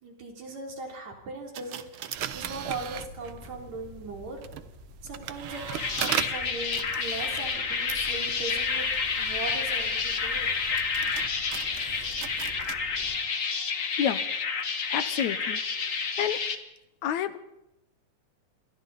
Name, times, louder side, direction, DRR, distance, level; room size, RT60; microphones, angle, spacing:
voice 1, 0.0-4.4 5.0-5.6 6.0-8.9 9.2-10.6, right 3 dB, 60° right, 1 dB, 4.6 m, -39 dB
sound 1, 1.5-3.6 4.2-12.8, right 10 dB, 80° right, 1.1 m, -38 dB
sound 2, 2.1-13.2, left 1 dB, 15° right, 6.4 m, -48 dB
sound 3, 5.5-16.6, left 5 dB, 45° left, 1.0 m, -29 dB
voice 2, 14.9-15.6 15.9-16.4 17.0-17.4, left 9 dB, 70° left, 12 dB, 2.2 m, -29 dB
27.5 x 24.0 x 4.1 m, 0.91 s
omnidirectional pair, 3.6 m